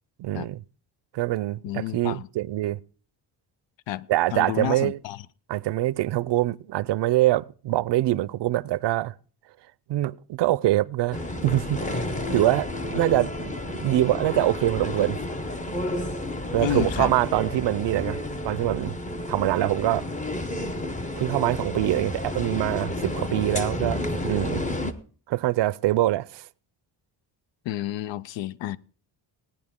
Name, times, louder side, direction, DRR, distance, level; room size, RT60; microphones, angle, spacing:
voice 1, 0.2-0.6 1.1-2.8 4.1-5.0 5.5-9.1 9.9-12.0 12.3-15.2 16.5-18.2 18.4-18.9 19.3-20.1 21.2-24.6 25.3-26.5, right 15 dB, 70° right, 0.5 m, -24 dB
voice 2, 1.6-2.3 3.9-5.2 16.6-17.1 27.7-28.8, left 12 dB, 90° left, 0.6 m, -30 dB
sound 1, 11.1-24.9, left 1 dB, 15° left, 0.8 m, -31 dB
17.5 x 10.0 x 3.6 m
wide cardioid pair, 140°, 43 cm